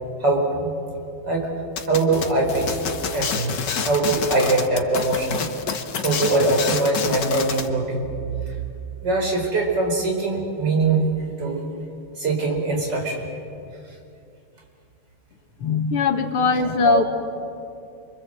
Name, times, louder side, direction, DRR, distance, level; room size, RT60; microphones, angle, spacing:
voice 1, 0.2-0.7 1.2-1.5 1.9-2.8 3.1-3.6 3.9-5.4 6.0-8.1 9.0-11.1 11.4-11.6 12.2-13.2 16.6-17.0, right 2 dB, 50° right, 0 dB, 5.3 m, -22 dB
sound 1, 1.8-7.7, left 6 dB, 55° left, 1.8 m, -28 dB
voice 2, 15.6-17.0, left 4 dB, 85° left, 5 dB, 2.6 m, -20 dB
28.5 x 24.5 x 7.8 m, 2.5 s
omnidirectional pair, 2.4 m